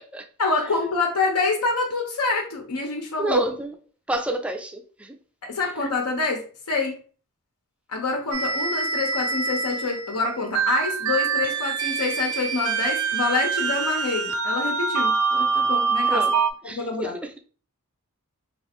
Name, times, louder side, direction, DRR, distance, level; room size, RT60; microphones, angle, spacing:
voice 1, 0.4-3.4 5.4-6.9 7.9-16.2 16.7-17.1, left 3 dB, 85° left, 0.8 m, -26 dB
voice 2, 3.2-3.7 4.1-5.2 16.1-16.4 16.6-17.3, right 2 dB, 5° right, 0.3 m, -29 dB
sound 1, 8.3-16.5, right 5 dB, 80° right, 0.4 m, -25 dB
3.1 x 2.5 x 3.4 m
head